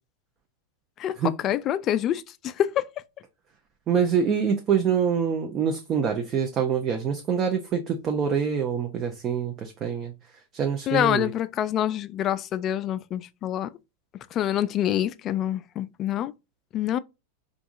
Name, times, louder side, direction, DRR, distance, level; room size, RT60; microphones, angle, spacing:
voice 1, 1.4-2.9 10.9-13.7 14.3-16.3 16.7-17.0, left 11 dB, 35° left, 0.3 m, -26 dB
voice 2, 3.9-10.1 10.5-11.3, right 7 dB, 30° right, 0.6 m, -25 dB
4.7 x 2.6 x 2.6 m
figure-of-eight pair, 90°, 0 cm